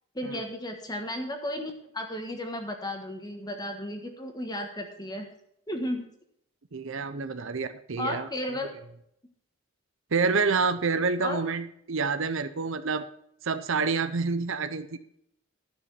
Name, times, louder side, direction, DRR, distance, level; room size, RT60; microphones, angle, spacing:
voice 1, 0.1-5.3 5.7-6.1 8.0-8.7 11.2-11.4, left 1 dB, 20° left, 4 dB, 1.4 m, -34 dB
voice 2, 6.7-8.3 10.1-13.1 13.4-15.0, right 4 dB, 70° right, 12 dB, 0.7 m, -28 dB
12.5 x 6.2 x 5.9 m, 0.72 s
head